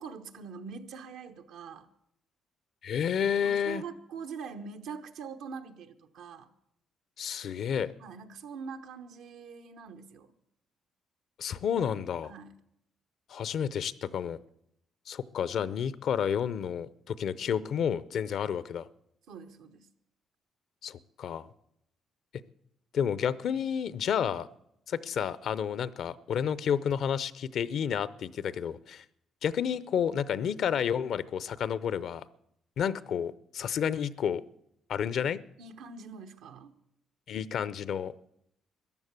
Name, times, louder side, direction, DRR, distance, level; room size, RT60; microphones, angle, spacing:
voice 1, 0.0-1.9 3.4-6.5 8.0-10.3 12.2-12.5 19.3-19.9 35.6-36.7, right 5 dB, 85° right, 6 dB, 1.1 m, -43 dB
voice 2, 2.8-3.8 7.2-7.9 11.4-12.3 13.3-14.4 15.1-18.9 20.8-21.5 22.9-24.5 24.9-29.0 29.4-32.2 32.8-34.4 34.9-35.4 37.3-38.1, left 8 dB, 70° left, 18 dB, 0.6 m, -30 dB
14.0 x 10.5 x 8.1 m, 0.76 s
cardioid pair, 90°, 0 cm